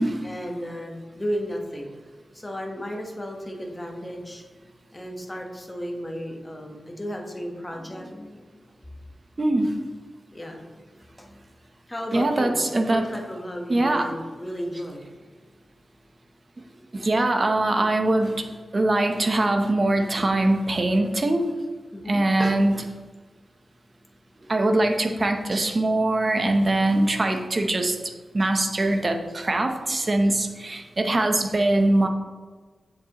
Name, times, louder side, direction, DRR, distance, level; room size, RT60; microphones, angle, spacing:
voice 1, 0.2-1.9 2.3-4.4 4.9-8.6 10.3-10.7 11.2-11.3 11.9-12.6 12.9-15.0 21.9-22.2, equal, 15° left, 1 dB, 1.2 m, -34 dB
voice 2, 9.4-9.8 12.1-13.1 13.7-14.1 16.9-18.5 18.7-21.5 22.1-22.9 24.5-32.1, right 2 dB, 35° right, 5 dB, 0.8 m, -22 dB
7.5 x 7.4 x 3.0 m, 1.4 s
wide cardioid pair, 100°, 0 cm